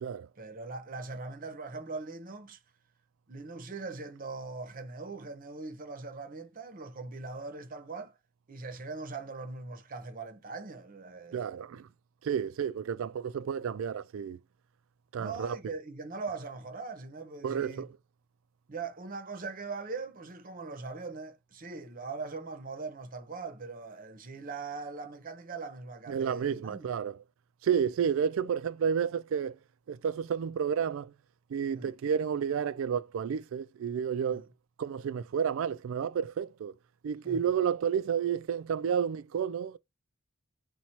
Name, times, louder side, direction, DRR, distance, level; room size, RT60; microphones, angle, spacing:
voice 1, 0.4-2.6 3.3-8.1 8.5-11.4 15.2-17.9 18.7-26.9 31.7-31.9 34.3-34.4 37.2-37.4, right 4 dB, 40° right, 0.7 m, -41 dB
voice 2, 11.3-11.9 12.2-14.4 15.1-15.6 17.4-17.9 26.1-27.1 27.6-29.6 29.9-31.1 31.5-34.5 34.8-36.7 37.0-39.8, right 7 dB, 70° right, 0.3 m, -31 dB
4.4 x 2.3 x 4.0 m
head